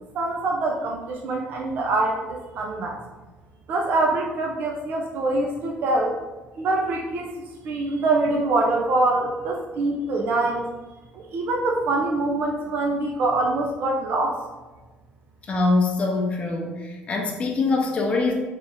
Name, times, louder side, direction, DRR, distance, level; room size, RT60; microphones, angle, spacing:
voice 1, 0.1-3.0 3.7-6.1 6.6-7.3 7.6-10.6 11.1-14.4, right 2 dB, 60° right, 0 dB, 0.5 m, -24 dB
voice 2, 15.5-18.3, left 3 dB, 30° left, 0 dB, 0.6 m, -23 dB
3.4 x 3.0 x 4.3 m, 1.2 s
cardioid pair, 125°, 4 cm